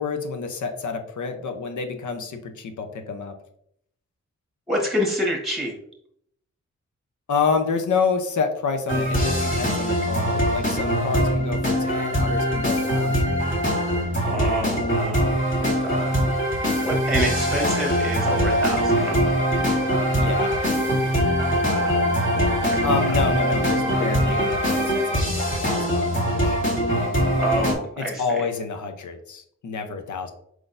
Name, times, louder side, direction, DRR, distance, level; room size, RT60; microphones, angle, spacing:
voice 1, 0.0-3.3 7.3-13.4 20.1-20.6 22.8-26.6 28.0-30.3, left 5 dB, 85° left, 7 dB, 0.8 m, -28 dB
voice 2, 4.7-5.7 14.2-16.2 16.8-19.2 21.6-23.1 27.4-28.4, equal, ahead, 0 dB, 1.4 m, -28 dB
sound 1, 8.9-27.7, equal, 40° left, 1.8 m, -22 dB
4.7 x 3.9 x 2.6 m, 0.69 s
cardioid pair, 70°, 29 cm